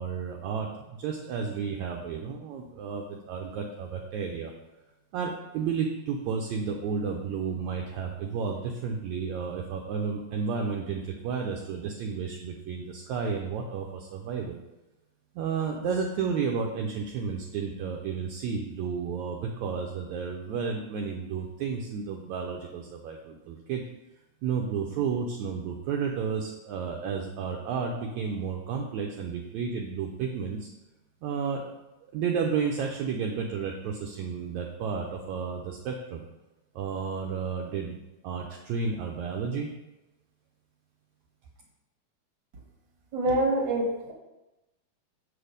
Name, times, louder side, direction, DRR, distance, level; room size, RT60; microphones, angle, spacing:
voice 1, 0.0-4.5 5.1-14.6 15.3-23.8 24.4-30.7 31.2-31.6 32.1-36.2 36.7-39.7, right 6 dB, 80° right, 1 dB, 1.6 m, -32 dB
voice 2, 43.1-44.1, right 1 dB, 45° right, -2 dB, 1.7 m, -26 dB
6.7 x 4.8 x 5.1 m, 1.0 s
omnidirectional pair, 3.9 m